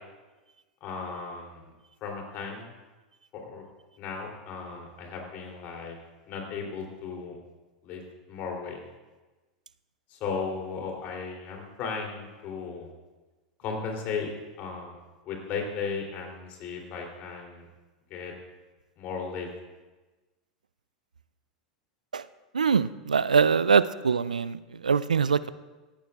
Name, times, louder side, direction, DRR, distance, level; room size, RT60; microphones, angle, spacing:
voice 1, 0.8-1.7 2.0-2.7 3.3-3.6 4.0-6.0 6.3-7.4 7.8-8.0 8.3-8.8 10.1-12.9 13.6-14.3 14.6-15.0 15.2-17.7 18.1-18.3 19.0-19.5, left 5 dB, 45° left, 1 dB, 3.1 m, -35 dB
voice 2, 22.5-25.5, right 6 dB, 85° right, 16 dB, 0.3 m, -23 dB
17.5 x 14.0 x 2.4 m, 1.2 s
hypercardioid pair, 90°, 4 cm